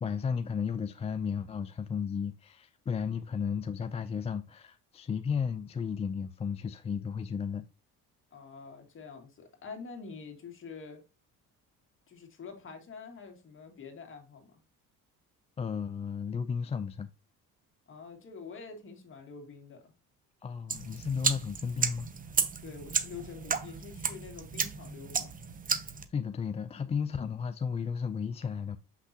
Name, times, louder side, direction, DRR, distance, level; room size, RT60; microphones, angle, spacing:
voice 1, 0.0-7.7 15.6-17.1 20.4-22.1 26.1-28.8, left 6 dB, 20° left, 0.3 m, -34 dB
voice 2, 8.3-11.0 12.1-14.6 17.9-19.9 22.6-25.3, left 5 dB, 35° left, 2.2 m, -46 dB
sound 1, 20.7-26.0, right 6 dB, 25° right, 0.7 m, -33 dB
6.7 x 6.0 x 2.8 m
cardioid pair, 115°, 34 cm